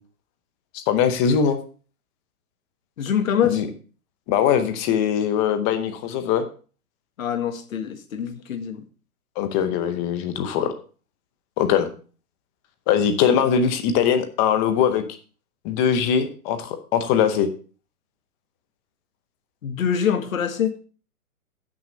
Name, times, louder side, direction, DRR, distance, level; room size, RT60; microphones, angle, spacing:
voice 1, 0.7-1.6 3.4-3.7 4.3-6.5 9.4-10.7 11.6-11.9 12.9-15.0 15.6-17.5, left 8 dB, 20° left, 9 dB, 0.8 m, -21 dB
voice 2, 3.0-3.6 7.2-8.8 19.6-20.8, left 8 dB, 60° left, 8 dB, 1.6 m, -24 dB
14.5 x 6.3 x 3.2 m, 0.38 s
hypercardioid pair, 130°, 45 cm